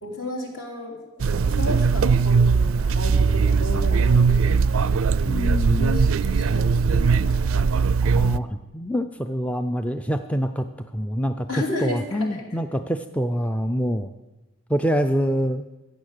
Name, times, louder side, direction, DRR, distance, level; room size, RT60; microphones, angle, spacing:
voice 1, 0.0-5.0 5.8-7.5 11.5-12.6, left 2 dB, 65° left, -1 dB, 3.2 m, -33 dB
sound 1, 1.2-8.4, right 5 dB, 70° right, 0.4 m, -20 dB
voice 2, 5.3-5.9 8.0-8.5 8.7-10.6 10.9-11.5 11.8-14.1 14.7-15.6, equal, 5° left, 8 dB, 0.4 m, -25 dB
15.0 x 9.0 x 6.6 m, 1.1 s
head